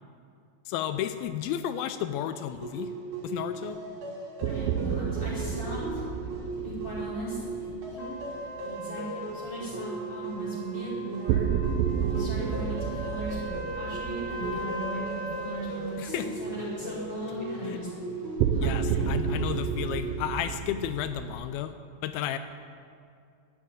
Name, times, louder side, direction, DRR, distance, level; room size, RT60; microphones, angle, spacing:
voice 1, 0.7-2.9 3.2-3.8 16.0-16.3 17.7-17.8 18.6-21.7 22.0-22.4, left 10 dB, 90° left, 10 dB, 2.4 m, -32 dB
sound 1, 2.6-20.2, right 2 dB, 55° right, 3.5 m, -37 dB
voice 2, 4.4-6.0 6.5-8.1 8.6-11.5 11.9-13.4 13.7-17.9 18.5-19.1, right 1 dB, 30° left, -7 dB, 4.9 m, -38 dB
sound 2, 4.4-8.6 11.3-15.7 16.0-16.1 18.4-21.4, right 8 dB, 80° right, 2.4 m, -31 dB
Trumpet, 8.0-15.8, equal, 50° left, 3.3 m, -41 dB
11.5 x 8.5 x 9.1 m, 2.3 s
omnidirectional pair, 4.1 m